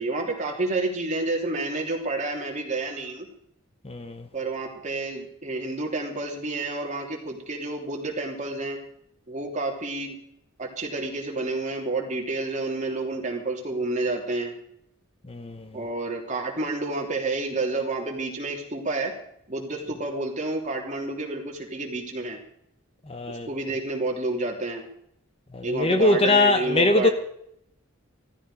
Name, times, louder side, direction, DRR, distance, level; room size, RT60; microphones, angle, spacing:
voice 1, 0.0-3.3 4.3-8.8 9.3-10.2 10.6-14.5 15.7-19.1 19.5-22.4 23.3-24.9 25.6-27.1, right 2 dB, 35° right, 3.3 m, -29 dB
voice 2, 3.8-4.3 15.3-15.6 23.1-23.5 25.5-27.1, left 2 dB, 25° left, 0.9 m, -22 dB
16.5 x 14.0 x 5.0 m
head